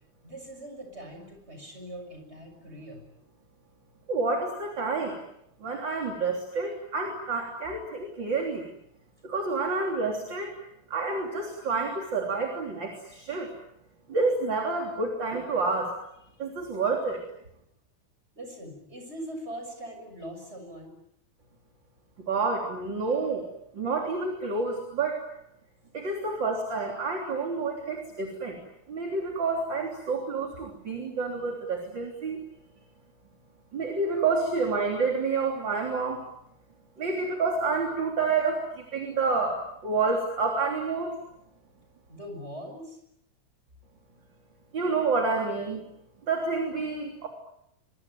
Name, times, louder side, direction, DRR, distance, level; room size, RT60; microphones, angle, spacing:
voice 1, 0.2-3.0 18.4-21.0 42.1-43.0, equal, 15° right, 5 dB, 6.9 m, -41 dB
voice 2, 4.1-5.2 5.6-8.7 9.2-10.6 10.9-13.5 14.1-15.9 16.4-17.2 22.2-23.5 23.7-25.2 25.9-28.6 28.9-32.4 33.7-36.2 37.0-41.2 44.7-45.8 46.3-47.3, right 4 dB, 30° right, 2 dB, 3.7 m, -29 dB
25.0 x 23.5 x 9.3 m, 0.78 s
omnidirectional pair, 4.3 m